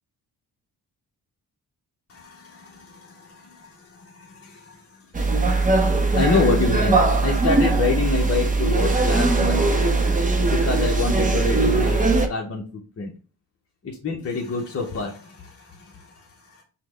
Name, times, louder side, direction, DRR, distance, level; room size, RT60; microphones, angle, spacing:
voice 1, 2.1-5.4 6.2-9.6 10.5-12.0 12.3-13.1 13.8-16.6, left 4 dB, 35° left, -1 dB, 0.7 m, -27 dB
sound 1, 5.1-12.3, right 3 dB, 20° right, 0.6 m, -20 dB
5.6 x 2.1 x 3.2 m, 0.39 s
wide cardioid pair, 125°, 40 cm